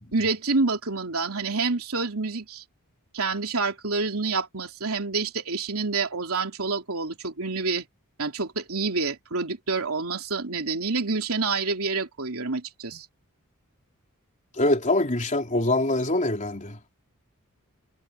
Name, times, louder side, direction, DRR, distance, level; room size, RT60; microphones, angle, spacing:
voice 1, 0.1-2.6 3.1-7.8 8.2-13.1, right 4 dB, 70° right, 3.5 m, -28 dB
voice 2, 14.6-16.8, left 2 dB, 35° left, 3.5 m, -24 dB
head